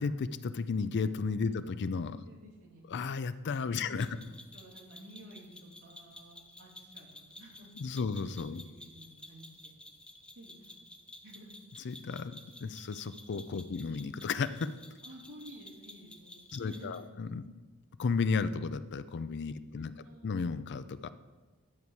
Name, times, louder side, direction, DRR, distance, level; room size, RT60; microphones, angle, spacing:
voice 1, 0.0-2.2 2.9-4.1 7.8-8.6 11.8-14.7 16.5-17.4 18.0-19.9 20.2-21.1, left 5 dB, 50° left, 13 dB, 0.4 m, -33 dB
voice 2, 2.2-2.8 3.8-7.7 8.5-9.7 10.1-11.5 15.0-17.1 19.6-20.6, right 1 dB, 65° right, -5 dB, 2.9 m, -54 dB
sound 1, 4.0-17.0, left 1 dB, 5° left, 0.6 m, -53 dB
10.5 x 4.7 x 7.1 m, 1.3 s
head